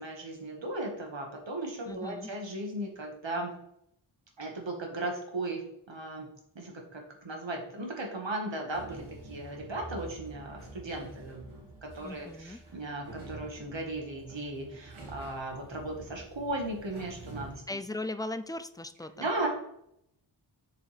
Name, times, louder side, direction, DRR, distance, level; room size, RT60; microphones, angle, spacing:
voice 1, 0.0-3.5 4.4-5.6 5.9-6.3 6.6-17.6 19.2-19.5, right 2 dB, 65° right, 1 dB, 1.8 m, -36 dB
voice 2, 1.9-2.3 12.0-12.6 17.7-19.3, left 2 dB, 10° left, 10 dB, 0.4 m, -38 dB
sound 1, 8.7-17.6, right 2 dB, 90° right, 1.9 m, -48 dB
7.3 x 6.8 x 3.4 m, 0.74 s
wide cardioid pair, 85°, 47 cm